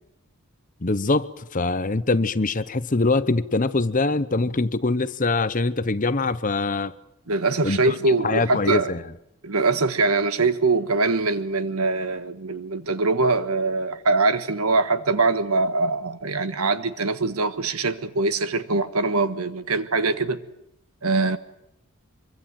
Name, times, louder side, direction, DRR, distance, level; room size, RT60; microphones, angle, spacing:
voice 1, 0.8-6.9 7.6-7.9 8.2-9.0, left 3 dB, 35° left, 0.9 m, -23 dB
voice 2, 7.3-8.9 9.4-20.4 21.0-21.4, right 3 dB, 85° right, 1.5 m, -23 dB
24.5 x 23.5 x 7.7 m
head